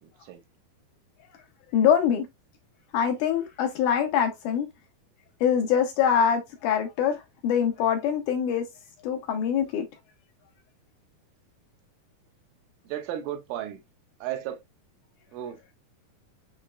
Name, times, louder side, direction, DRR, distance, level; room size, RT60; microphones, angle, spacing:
voice 1, 0.0-0.4 12.8-13.8 14.2-14.6 15.3-15.7, right 11 dB, 90° right, 2.4 m, -34 dB
voice 2, 1.7-2.3 2.9-4.7 5.4-8.6 9.0-9.9, left 8 dB, 80° left, 1.9 m, -24 dB
6.5 x 3.1 x 2.2 m
omnidirectional pair, 4.1 m